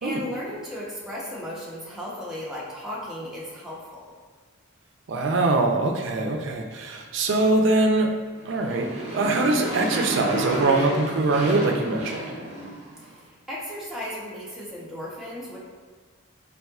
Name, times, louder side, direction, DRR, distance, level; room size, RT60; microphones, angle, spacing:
voice 1, 0.0-4.1 13.0-15.6, equal, 5° right, -7 dB, 0.8 m, -35 dB
voice 2, 5.1-8.1 8.5-12.3, right 2 dB, 65° right, 3 dB, 0.4 m, -23 dB
Motorcycle, 8.4-13.0, right 1 dB, 30° right, 0.8 m, -31 dB
4.1 x 3.7 x 2.3 m, 1.5 s
head